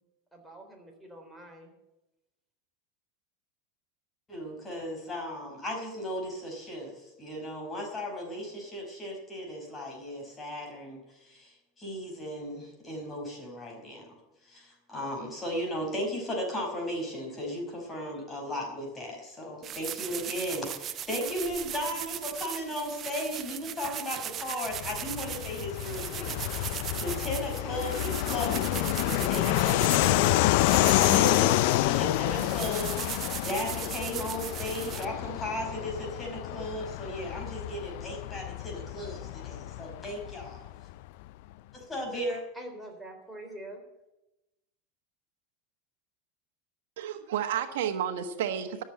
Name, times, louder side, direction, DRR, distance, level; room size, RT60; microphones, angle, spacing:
voice 1, 0.3-1.7 42.5-43.8, right 1 dB, 5° right, 0 dB, 3.9 m, -45 dB
voice 2, 4.3-14.2 14.4-40.6 41.7-42.4, equal, 20° left, 1 dB, 5.3 m, -36 dB
sound 1, 19.6-35.0, right 10 dB, 35° right, 0.7 m, -39 dB
Fixed-wing aircraft airplane, 24.7-40.9, left 17 dB, 65° left, 0.4 m, -28 dB
voice 3, 47.0-48.8, right 9 dB, 80° right, 8 dB, 1.3 m, -31 dB
13.5 x 7.3 x 9.8 m, 0.96 s
supercardioid pair, 125°, 0 cm